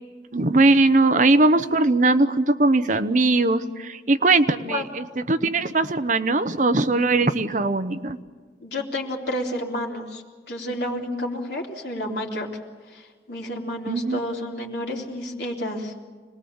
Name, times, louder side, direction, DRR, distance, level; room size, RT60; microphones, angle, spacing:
voice 1, 0.3-8.2 13.9-14.2, right 2 dB, 40° right, 11 dB, 0.8 m, -20 dB
voice 2, 8.6-10.2 10.5-12.5 12.9-15.9, left 1 dB, 65° left, 0 dB, 3.5 m, -30 dB
26.0 x 20.0 x 7.2 m, 1.5 s
head